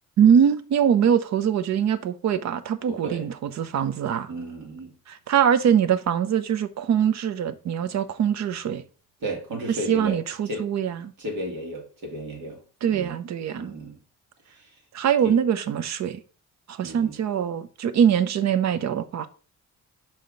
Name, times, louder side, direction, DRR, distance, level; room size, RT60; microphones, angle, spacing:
voice 1, 0.2-4.3 5.1-8.8 9.7-11.1 12.8-13.8 14.9-16.2 16.7-19.3, right 8 dB, 60° right, 0.7 m, -23 dB
voice 2, 2.9-3.3 4.3-4.9 9.2-10.2 10.5-10.7 11.2-12.6 12.9-13.1 13.6-14.0 14.5-14.7 15.2-15.3 16.8-17.1, right 1 dB, 80° right, 2.2 m, -34 dB
5.7 x 4.9 x 3.8 m
cardioid pair, 90°, 30 cm